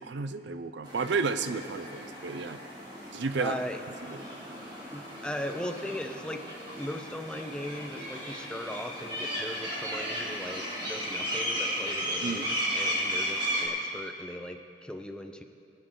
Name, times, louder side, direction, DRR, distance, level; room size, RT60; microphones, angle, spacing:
voice 1, 0.0-2.6 3.1-3.6 4.1-4.2 12.2-12.5, right 4 dB, 85° right, 11 dB, 0.6 m, -32 dB
sound 1, 0.8-13.7, equal, 30° right, 3.2 m, -35 dB
voice 2, 3.4-3.8 4.9-6.4 6.8-15.4, left 1 dB, 5° left, 5 dB, 0.6 m, -38 dB
25.0 x 8.6 x 3.8 m, 2.5 s
head